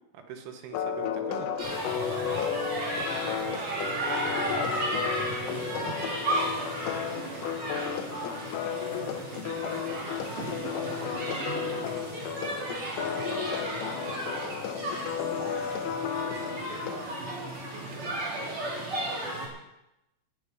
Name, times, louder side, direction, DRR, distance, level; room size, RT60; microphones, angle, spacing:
voice 1, 0.1-1.5 11.2-11.9, right 8 dB, 75° right, 5 dB, 3.8 m, -41 dB
sound 1, 0.7-17.0, left 8 dB, 85° left, 3.7 m, -33 dB
sound 2, 1.6-19.5, right 1 dB, 30° right, 3.9 m, -34 dB
voice 2, 2.0-2.6 3.4-7.4 8.5-10.7 12.5-14.3 14.6-15.7 16.4-16.9 17.7-19.5, right 4 dB, 90° right, -2 dB, 6.4 m, -48 dB
14.5 x 6.9 x 9.3 m, 0.89 s
omnidirectional pair, 5.9 m